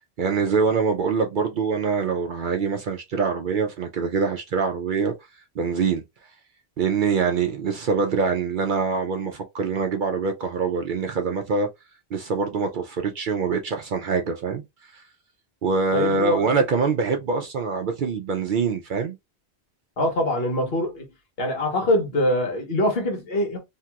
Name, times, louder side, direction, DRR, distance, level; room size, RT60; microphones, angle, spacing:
voice 1, 0.2-5.1 5.6-6.0 6.8-11.7 12.1-14.6 14.9-15.0 15.6-19.2, right 5 dB, 60° right, 0.6 m, -24 dB
voice 2, 15.9-16.6 20.0-21.1 21.4-23.6, left 1 dB, 65° left, 1.2 m, -24 dB
2.8 x 2.8 x 2.3 m
omnidirectional pair, 1.1 m